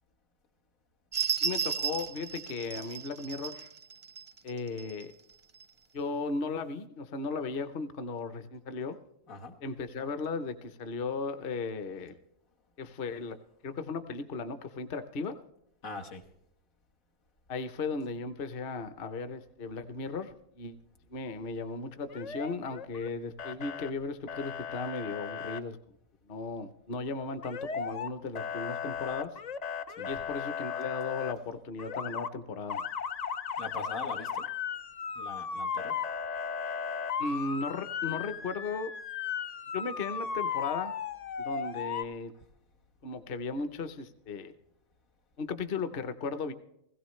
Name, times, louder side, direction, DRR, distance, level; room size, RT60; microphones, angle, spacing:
sound 1, 1.1-5.0 5.6-5.7, right 6 dB, 40° right, 0.4 m, -34 dB
voice 1, 1.4-3.7 4.4-5.1 5.9-9.0 9.6-12.1 12.8-13.4 13.6-15.4 17.5-20.8 21.1-25.8 26.3-29.4 30.1-32.8 37.2-38.9 39.7-40.9 41.4-42.3 43.0-44.5 45.4-46.5, left 4 dB, 50° left, 10 dB, 0.9 m, -36 dB
voice 2, 15.8-16.2 30.0-30.1 33.6-34.5 35.2-36.0, left 3 dB, 90° left, 2 dB, 1.8 m, -41 dB
Motor vehicle (road) / Siren, 22.1-23.1 23.4-23.9 24.3-25.6 27.4-28.1 28.4-31.3 31.8-32.3 32.7-42.0, left 7 dB, 70° left, 0.3 m, -36 dB
17.0 x 16.0 x 3.2 m, 0.78 s
omnidirectional pair, 1.4 m